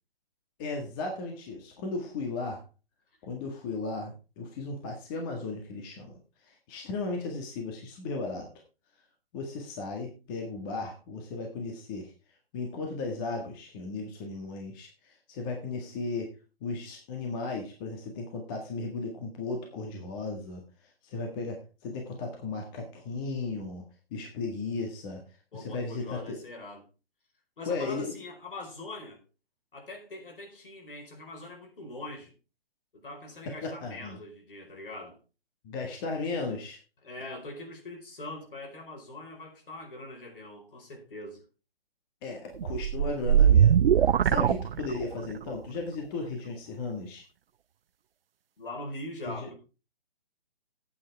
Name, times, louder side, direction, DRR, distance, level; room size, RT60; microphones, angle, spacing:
voice 1, 0.6-2.6 3.2-8.5 9.3-12.1 12.5-16.3 16.6-23.8 24.1-25.3 25.5-26.4 27.6-28.1 33.4-34.2 35.6-36.8 42.2-47.2 49.2-49.6, left 3 dB, 25° left, 1.7 m, -36 dB
voice 2, 25.5-26.8 27.6-29.2 29.7-32.3 32.9-35.2 37.0-41.4 48.6-49.6, left 2 dB, 65° left, 4.7 m, -42 dB
sound 1, 42.6-45.3, right 9 dB, 75° right, 0.5 m, -21 dB
14.0 x 8.7 x 3.5 m
figure-of-eight pair, 145°, 29 cm